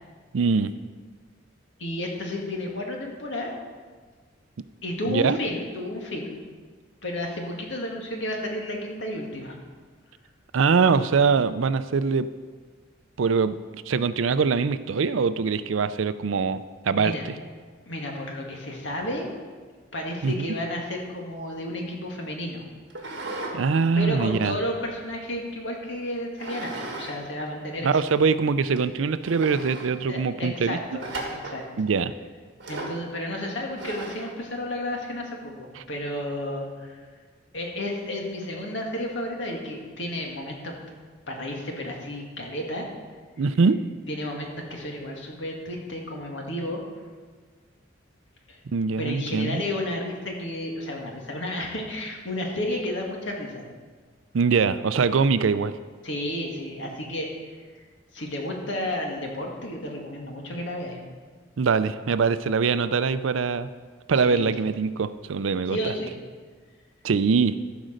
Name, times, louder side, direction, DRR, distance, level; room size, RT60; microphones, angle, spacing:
voice 1, 0.3-0.7 5.1-5.4 10.5-12.3 13.2-13.5 13.9-17.1 20.2-20.5 23.5-24.6 27.8-30.8 31.8-32.1 35.8-35.9 43.4-43.8 48.7-49.6 54.3-55.7 61.6-63.7 64.1-65.9 67.0-67.6, right 5 dB, 75° right, 13 dB, 0.5 m, -23 dB
voice 2, 1.8-3.5 4.8-6.3 7.0-9.6 17.0-17.3 17.9-19.3 19.9-22.6 23.0-23.2 24.0-28.0 30.1-31.6 32.7-37.0 37.5-40.7 41.3-42.9 44.1-46.8 48.5-48.6 49.0-53.7 56.0-57.3 57.7-57.8 58.1-61.0 64.1-64.5 65.7-66.1, left 1 dB, 60° left, 0 dB, 2.0 m, -32 dB
sound 1, 22.9-23.6 24.0-25.4 26.4-27.2 27.5-27.6 28.2-28.3 28.8-28.9 29.2-29.9 31.0-31.6 32.6-33.0 33.8-34.3, right 2 dB, 60° right, 1.9 m, -36 dB
14.5 x 5.1 x 6.5 m, 1.5 s
head